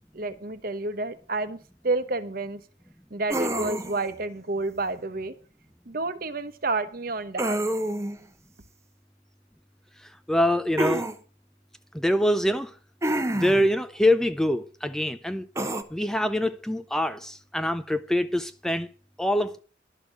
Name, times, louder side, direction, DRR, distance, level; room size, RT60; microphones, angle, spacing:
voice 1, 0.1-1.6 1.8-2.6 3.1-5.3 5.9-7.6, right 3 dB, 50° right, 1.1 m, -30 dB
sound 1, 3.3-4.1 7.4-8.2 10.8-11.2 13.0-13.7 15.6-15.8, right 1 dB, 15° right, 1.0 m, -27 dB
voice 2, 10.3-11.1 11.9-12.7 13.3-15.5 15.9-18.9 19.2-19.6, left 1 dB, 5° left, 0.5 m, -24 dB
12.0 x 6.5 x 7.9 m
head